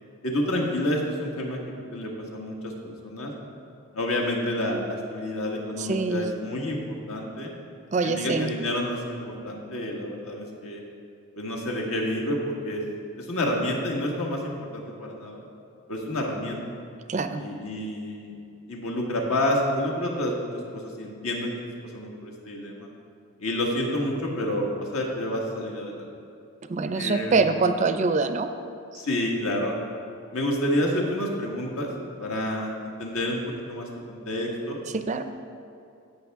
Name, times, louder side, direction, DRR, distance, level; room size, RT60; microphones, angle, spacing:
voice 1, 0.2-1.6 1.9-3.3 3.9-7.5 8.0-10.8 11.3-12.8 13.2-15.4 15.9-16.6 17.4-18.3 18.7-20.5 20.7-21.5 21.9-22.9 23.4-26.0 26.9-27.6 28.9-29.7 30.3-31.9 32.2-34.8, left 1 dB, 80° left, -1 dB, 1.6 m, -29 dB
voice 2, 5.8-6.3 7.9-8.5 17.1-17.4 26.7-28.5 34.9-35.2, right 4 dB, 35° right, 9 dB, 0.4 m, -24 dB
16.5 x 5.8 x 3.6 m, 2.5 s
head